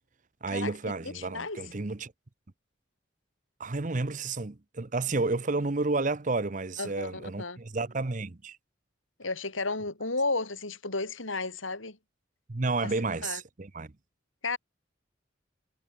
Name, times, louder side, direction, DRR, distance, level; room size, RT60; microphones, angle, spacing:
voice 1, 0.4-2.1 3.6-8.6 12.5-13.9, right 3 dB, 40° right, 0.8 m, -31 dB
voice 2, 1.0-1.6 6.8-7.6 9.2-12.0 12.8-12.9 13.2-13.4 14.4-14.6, left 3 dB, 90° left, 5.4 m, -33 dB
head